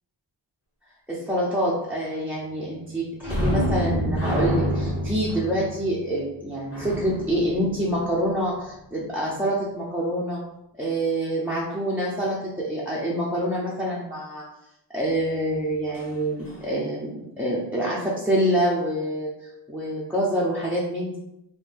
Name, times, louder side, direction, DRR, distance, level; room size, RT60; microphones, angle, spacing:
voice 1, 1.1-10.4 10.8-14.4 14.9-21.2, right 1 dB, 5° right, -7 dB, 0.7 m, -26 dB
sound 1, 3.2-8.6 15.9-16.1 16.5-16.6, equal, 30° left, 1.4 m, -28 dB
5.3 x 2.2 x 3.4 m, 0.86 s
wide cardioid pair, 110°, 45 cm